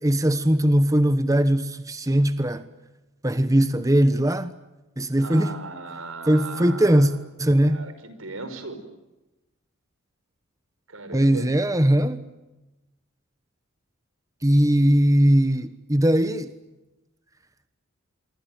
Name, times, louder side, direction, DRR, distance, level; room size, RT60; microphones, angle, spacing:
voice 1, 0.0-2.7 3.2-4.5 5.0-5.6 6.3-7.1 7.4-7.9 11.1-12.2 14.4-16.5, right 1 dB, 15° right, 1.2 m, -20 dB
voice 2, 5.2-7.0 7.7-8.8 10.9-11.4, right 3 dB, 90° right, 5.8 m, -37 dB
26.5 x 24.5 x 9.2 m
head